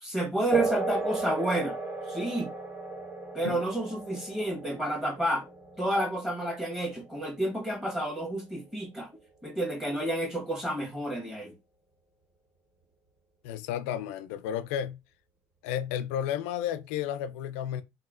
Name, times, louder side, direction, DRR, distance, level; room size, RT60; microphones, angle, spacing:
voice 1, 0.0-1.7 2.0-2.5 3.3-5.5 5.8-9.1 9.4-11.5, right 1 dB, 5° right, 1.4 m, -30 dB
sound 1, 0.5-8.5, right 3 dB, 55° right, 1.7 m, -35 dB
voice 2, 13.4-15.0 15.6-17.8, left 10 dB, 90° left, 0.4 m, -32 dB
3.0 x 2.6 x 2.5 m
supercardioid pair, 95°, 7 cm